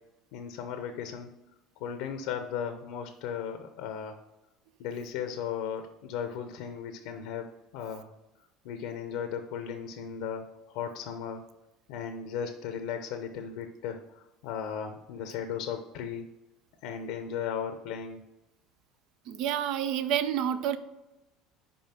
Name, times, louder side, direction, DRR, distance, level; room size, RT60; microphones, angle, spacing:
voice 1, 0.3-1.3 1.8-4.2 4.8-8.1 8.6-11.5 11.9-16.3 16.8-18.2, left 7 dB, 75° left, 7 dB, 0.7 m, -36 dB
voice 2, 19.3-20.8, right 9 dB, 65° right, 12 dB, 0.5 m, -29 dB
5.4 x 5.0 x 5.8 m, 1.0 s
supercardioid pair, 105°, 0 cm